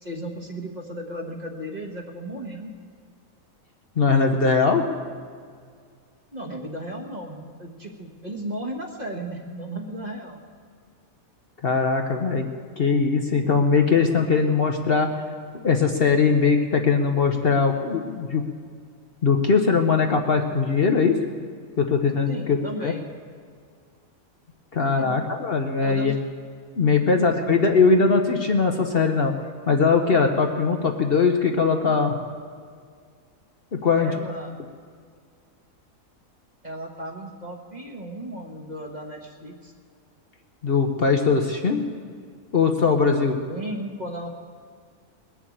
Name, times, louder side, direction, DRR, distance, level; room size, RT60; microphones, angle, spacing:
voice 1, 0.0-2.7 6.3-10.4 22.3-23.1 25.0-25.2 25.8-26.2 27.0-27.6 33.9-34.5 36.6-39.7 43.5-44.3, right 1 dB, 30° right, 1 dB, 1.5 m, -35 dB
voice 2, 4.0-4.8 11.6-12.5 12.8-15.1 15.6-18.4 19.2-21.2 21.8-22.9 24.7-26.1 26.8-29.3 29.7-32.1 33.8-34.1 40.6-41.9 42.5-43.4, left 5 dB, 50° left, 3 dB, 1.0 m, -20 dB
20.5 x 7.1 x 8.7 m, 2.1 s
omnidirectional pair, 1.5 m